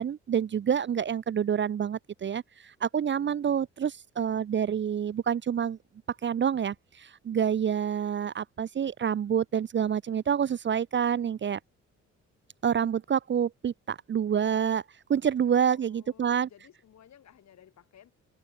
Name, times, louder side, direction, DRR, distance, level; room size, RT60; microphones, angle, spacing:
voice 1, 0.0-5.8 6.2-11.6 12.6-14.8 15.1-16.5, right 8 dB, 40° right, 0.6 m, -27 dB
voice 2, 15.7-18.1, left 9 dB, 65° left, 7.2 m, -56 dB
open air
cardioid pair, 90°, 30 cm